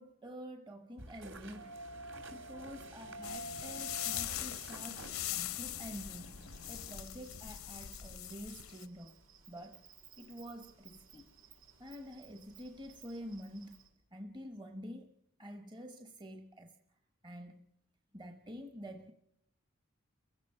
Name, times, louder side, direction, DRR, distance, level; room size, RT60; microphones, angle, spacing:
voice 1, 0.0-1.8 2.3-6.4 6.7-9.2 9.5-9.8 10.2-11.3 11.8-13.8 14.1-15.1 15.4-16.8 17.2-17.7 18.1-19.1, equal, 20° right, 1.1 m, -48 dB
sound 1, 1.0-7.0, right 1 dB, 60° right, 2.9 m, -48 dB
sound 2, 3.2-8.9, left 12 dB, 90° left, 0.8 m, -41 dB
Insect, 6.5-13.9, right 6 dB, 75° right, 6.8 m, -60 dB
30.0 x 16.5 x 5.6 m
head